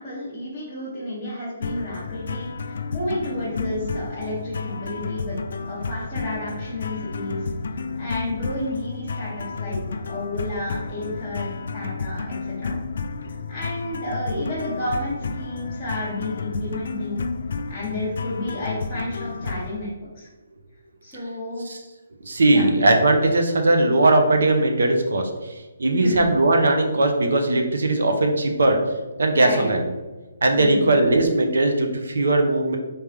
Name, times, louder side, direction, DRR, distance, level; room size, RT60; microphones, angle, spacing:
voice 1, 0.0-5.4 5.7-7.4 8.0-9.8 10.1-12.8 13.3-17.2 17.7-20.3 21.0-21.7 22.5-22.6 26.0-26.3 29.3-29.7 30.6-30.9, left 1 dB, 5° right, -14 dB, 0.9 m, -31 dB
sound 1, 1.6-19.8, left 4 dB, 50° left, 0.3 m, -31 dB
voice 2, 22.2-28.8 29.2-29.9 30.4-32.8, right 2 dB, 75° right, 4 dB, 0.9 m, -19 dB
4.4 x 3.6 x 3.3 m, 1.2 s
hypercardioid pair, 180°, 0 cm